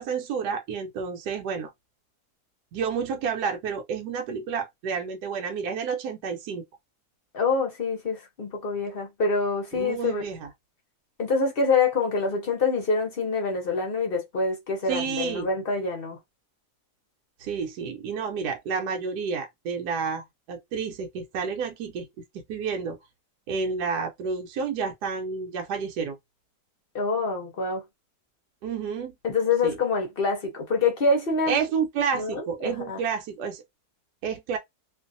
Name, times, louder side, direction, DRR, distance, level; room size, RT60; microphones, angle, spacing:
voice 1, 0.0-1.7 2.7-6.6 9.7-10.4 14.9-15.5 17.4-22.1 22.3-23.0 23.5-26.2 28.6-29.1 29.6-29.7 31.5-33.6 34.2-34.6, right 6 dB, 80° right, 1.1 m, -30 dB
voice 2, 7.3-10.2 11.2-16.2 26.9-27.8 29.2-31.6 32.1-33.0, left 4 dB, 50° left, 0.7 m, -26 dB
2.6 x 2.3 x 2.5 m
omnidirectional pair, 1.7 m